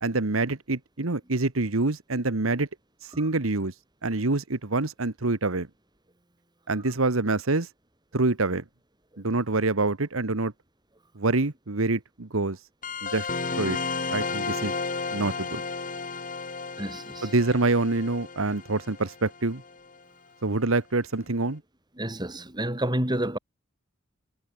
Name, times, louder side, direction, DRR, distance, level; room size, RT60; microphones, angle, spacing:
voice 1, 0.0-2.7 3.0-3.7 4.0-5.7 6.7-7.7 8.1-8.6 9.2-10.5 11.1-12.6 13.0-13.3 13.6-13.8 14.1-14.7 15.1-15.6 17.2-19.6 20.4-21.6, right 2 dB, 90° right, 1.5 m, -26 dB
sound 1, 12.8-19.9, left 4 dB, 40° left, 4.4 m, -33 dB
voice 2, 16.8-17.3 22.0-23.4, right 1 dB, 20° right, 4.9 m, -29 dB
head